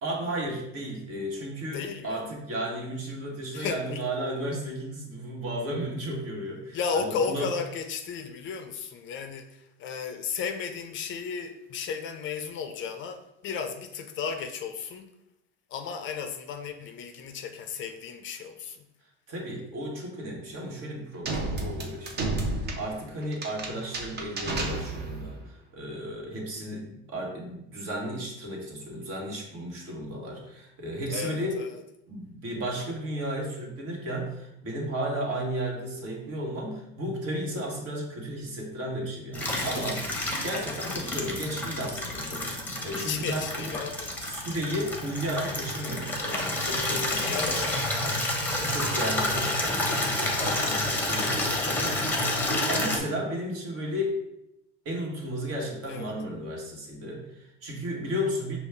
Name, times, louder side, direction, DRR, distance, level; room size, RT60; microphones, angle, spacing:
voice 1, 0.0-7.5 19.3-22.3 22.8-31.6 32.1-43.7 44.3-48.3 48.6-54.1 54.8-58.6, equal, 50° right, -1 dB, 1.4 m, -34 dB
voice 2, 1.7-2.2 3.5-4.0 6.7-15.1 15.7-18.9 31.1-31.8 40.9-41.0 42.9-44.1 47.2-47.7 55.9-56.1, left 6 dB, 40° left, 7 dB, 0.4 m, -34 dB
sound 1, 21.2-25.3, right 2 dB, 35° right, 0.8 m, -32 dB
Water tap faucet / Liquid, 39.3-53.0, left 1 dB, 5° left, 1.0 m, -29 dB
5.2 x 2.4 x 3.4 m, 0.86 s
supercardioid pair, 100°, 31 cm